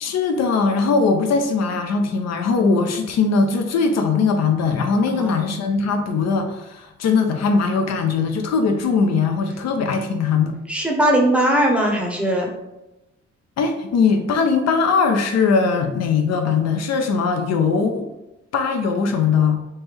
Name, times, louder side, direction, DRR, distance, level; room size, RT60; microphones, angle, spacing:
voice 1, 0.0-10.5 13.6-18.1 18.5-19.6, left 5 dB, 60° left, 5 dB, 0.5 m, -20 dB
voice 2, 10.7-12.5, right 1 dB, 5° right, -1 dB, 0.7 m, -19 dB
3.2 x 2.1 x 3.3 m, 0.95 s
cardioid pair, 90°, 30 cm